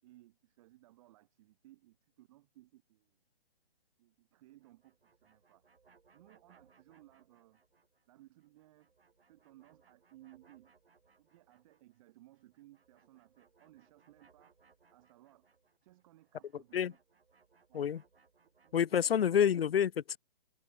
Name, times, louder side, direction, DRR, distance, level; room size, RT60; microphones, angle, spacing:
voice 1, 0.0-3.2 4.0-5.6 6.1-7.6 8.1-8.9 9.3-10.8 11.2-14.5 14.9-15.5 15.8-17.0 17.7-17.9 18.6-18.8, right 16 dB, 35° right, 6.9 m, -61 dB
sound 1, 4.5-8.1 8.4-12.0 12.3-18.9, right 5 dB, 80° right, 6.8 m, -69 dB
voice 2, 18.7-20.2, left 8 dB, 80° left, 0.5 m, -28 dB
hypercardioid pair, 145°, 29 cm